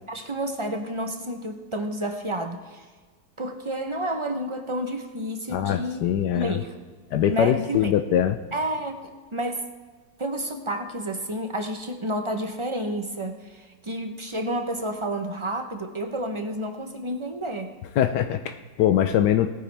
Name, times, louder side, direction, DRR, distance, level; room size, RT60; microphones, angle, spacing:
voice 1, 0.1-2.8 3.4-6.0 6.3-6.7 7.3-7.9 8.5-9.0 9.3-9.7 10.2-17.7, right 1 dB, 30° right, 6 dB, 0.5 m, -30 dB
voice 2, 5.5-6.6 7.1-8.4 18.0-19.5, left 10 dB, 85° left, 9 dB, 1.3 m, -22 dB
18.5 x 9.6 x 3.3 m, 1.5 s
omnidirectional pair, 1.8 m